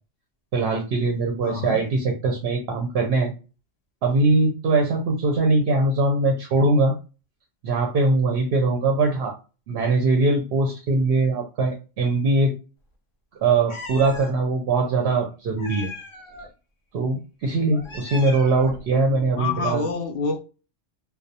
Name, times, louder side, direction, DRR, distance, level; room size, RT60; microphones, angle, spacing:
voice 1, 0.5-3.3 4.0-6.9 7.6-9.4 9.7-12.5 13.4-15.9 16.9-19.9, right 3 dB, 60° right, 0.7 m, -21 dB
voice 2, 1.4-1.8 19.4-20.4, left 4 dB, 65° left, 0.8 m, -27 dB
Meow, 13.7-14.3 15.6-16.5 17.7-18.8, left 2 dB, 40° left, 0.4 m, -38 dB
2.3 x 2.0 x 2.6 m
omnidirectional pair, 1.3 m